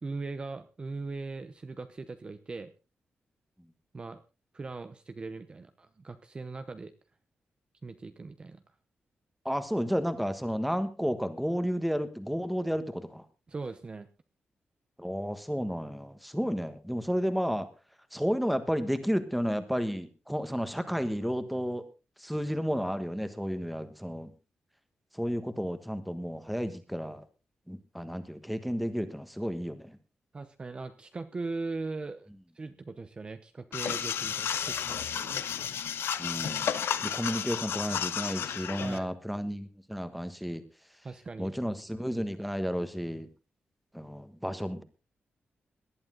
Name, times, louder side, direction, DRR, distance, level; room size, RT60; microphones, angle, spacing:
voice 1, 0.0-2.7 3.9-4.2 4.5-6.9 7.8-8.6 13.5-14.1 30.3-32.3 32.5-35.5 38.8-39.1 41.0-41.6, right 3 dB, 25° right, 9 dB, 0.8 m, -39 dB
voice 2, 9.4-13.2 15.0-17.7 18.1-21.8 22.2-24.3 25.1-27.2 27.7-30.0 36.2-36.7 37.0-40.6 41.4-43.3 43.9-44.8, equal, ahead, 10 dB, 1.4 m, -32 dB
sound 1, 33.7-39.0, left 8 dB, 80° left, 1.1 m, -32 dB
19.0 x 12.0 x 3.8 m, 0.31 s
wide cardioid pair, 170°, 4 cm